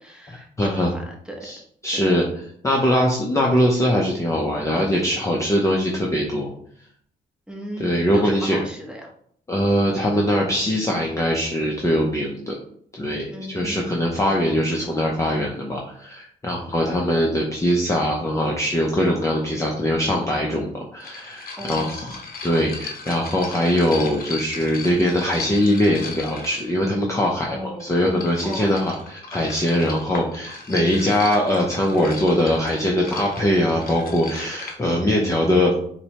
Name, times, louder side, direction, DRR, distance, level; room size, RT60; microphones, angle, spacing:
voice 1, 0.0-1.5 1.9-2.0 7.5-9.1 13.3-14.0 16.6-17.1 21.6-22.2 27.5-27.9 28.4-28.8, equal, 5° right, 0 dB, 0.9 m, -36 dB
voice 2, 0.6-0.9 1.4-1.6 1.8-2.2 2.6-6.5 7.8-8.6 9.5-12.6 13.0-35.8, left 1 dB, 15° left, -1 dB, 0.5 m, -22 dB
sound 1, 20.1-20.2 21.0-26.9 27.8-34.8, left 4 dB, 45° left, 0.7 m, -37 dB
4.2 x 2.1 x 2.8 m, 0.63 s
cardioid pair, 90°, 20 cm